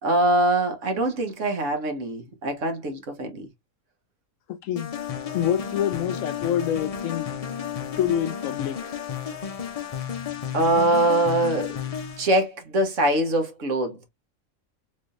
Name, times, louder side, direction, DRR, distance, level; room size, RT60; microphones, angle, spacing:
voice 1, 0.0-3.5 10.5-11.7 12.2-14.0, right 1 dB, 65° right, 1.4 m, -23 dB
voice 2, 4.5-4.9 5.3-7.3 8.0-8.9, left 10 dB, 75° left, 0.9 m, -26 dB
sound 1, 4.8-12.4, left 8 dB, 45° left, 0.4 m, -32 dB
3.8 x 3.2 x 2.5 m
omnidirectional pair, 1.4 m